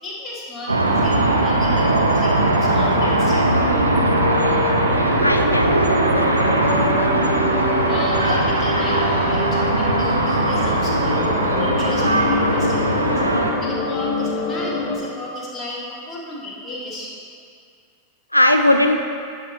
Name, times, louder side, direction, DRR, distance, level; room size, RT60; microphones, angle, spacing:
voice 1, 0.0-2.3 2.6-3.5 7.9-13.2 13.6-15.8 16.1-17.2, left 1 dB, 15° left, -6 dB, 1.8 m, -34 dB
sound 1, 0.7-13.5, right 2 dB, 80° right, 0.7 m, -19 dB
sound 2, 2.0-15.0, left 4 dB, 55° left, 0.9 m, -27 dB
voice 2, 5.2-6.7 18.3-19.0, left 1 dB, 85° left, 5 dB, 0.3 m, -19 dB
10.0 x 4.1 x 4.2 m, 2.3 s
figure-of-eight pair, 90°, 0 cm